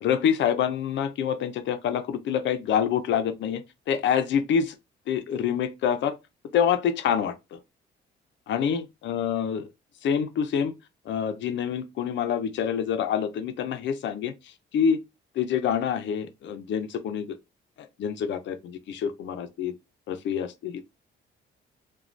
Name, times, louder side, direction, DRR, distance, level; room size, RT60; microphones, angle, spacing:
voice 1, 0.0-4.8 5.1-6.2 6.5-7.6 8.5-9.7 10.0-10.7 11.1-14.3 14.7-15.0 15.4-17.4 17.8-19.7 20.1-20.8, left 8 dB, 65° left, 0.5 m, -26 dB
2.5 x 2.2 x 3.1 m
cardioid pair, 90°, 20 cm